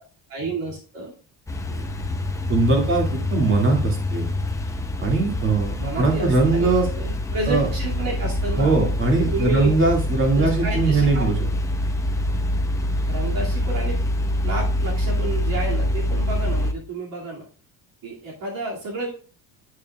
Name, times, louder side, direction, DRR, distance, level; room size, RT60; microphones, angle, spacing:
voice 1, 0.3-1.2 1.7-1.9 5.8-8.7 9.2-9.7 10.4-11.3 13.1-14.0 14.4-17.4 18.0-19.1, right 2 dB, 60° right, -2 dB, 2.5 m, -30 dB
sound 1, 1.5-16.7, left 1 dB, 10° left, 0.6 m, -25 dB
voice 2, 2.5-4.2 5.0-6.9 7.5-7.7 8.6-11.4, right 3 dB, 30° right, 0 dB, 2.2 m, -21 dB
9.1 x 8.9 x 2.4 m, 0.39 s
cardioid pair, 165°, 38 cm